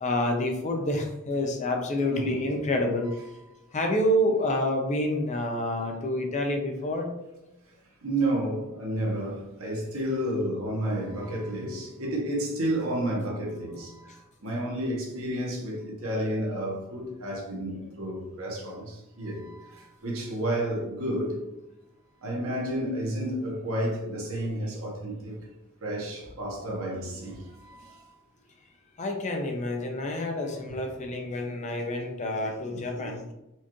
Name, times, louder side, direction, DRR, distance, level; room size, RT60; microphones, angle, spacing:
voice 1, 0.0-3.1 3.7-7.1 29.0-33.2, left 1 dB, 30° left, 0.5 m, -28 dB
voice 2, 2.1-2.4 8.0-14.1 14.4-21.4 22.2-25.4 25.8-28.0 30.8-31.0 32.7-33.2, right 1 dB, 70° right, 1.1 m, -31 dB
4.3 x 2.4 x 2.9 m
head